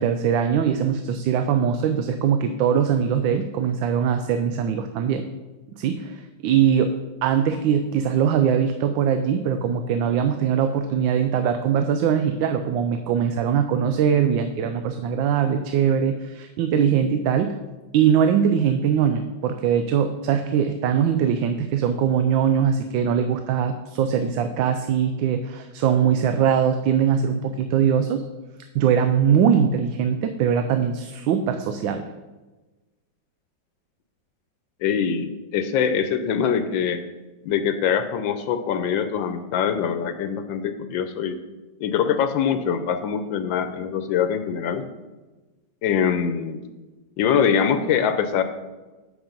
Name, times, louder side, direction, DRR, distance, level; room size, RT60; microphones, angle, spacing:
voice 1, 0.0-5.2 5.8-6.9 7.2-17.6 17.9-28.2 28.7-32.0, right 8 dB, 80° right, 8 dB, 1.3 m, -21 dB
voice 2, 34.8-37.0 37.4-41.4 41.8-44.8 45.8-46.6 47.2-48.4, left 7 dB, 80° left, 9 dB, 1.4 m, -23 dB
8.1 x 6.2 x 5.3 m, 1.2 s
omnidirectional pair, 2.1 m